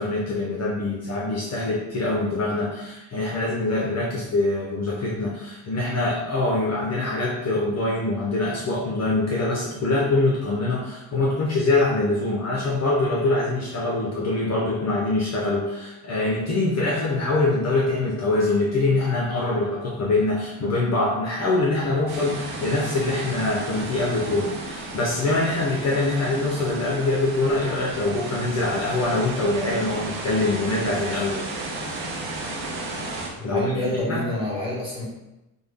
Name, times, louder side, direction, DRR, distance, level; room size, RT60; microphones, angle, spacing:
voice 1, 0.0-31.4 33.4-34.2, left 2 dB, 35° left, -3 dB, 0.6 m, -24 dB
sound 1, 22.1-33.3, right 2 dB, 70° right, 1.0 m, -33 dB
voice 2, 33.4-35.0, left 1 dB, 10° right, -6 dB, 1.3 m, -27 dB
3.5 x 2.2 x 3.4 m, 0.94 s
cardioid pair, 100°, 47 cm